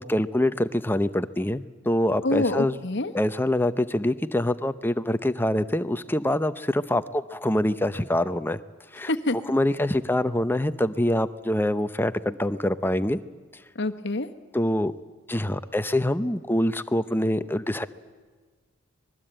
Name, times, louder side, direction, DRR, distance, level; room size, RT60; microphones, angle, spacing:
voice 1, 0.0-2.7 3.1-8.6 8.9-9.1 9.5-13.2 14.5-14.9 15.3-17.9, left 1 dB, 10° left, 12 dB, 0.7 m, -25 dB
voice 2, 2.2-3.1 9.1-9.4 13.7-14.3, left 2 dB, 55° left, 8 dB, 1.3 m, -26 dB
25.5 x 20.5 x 8.9 m, 1.4 s
head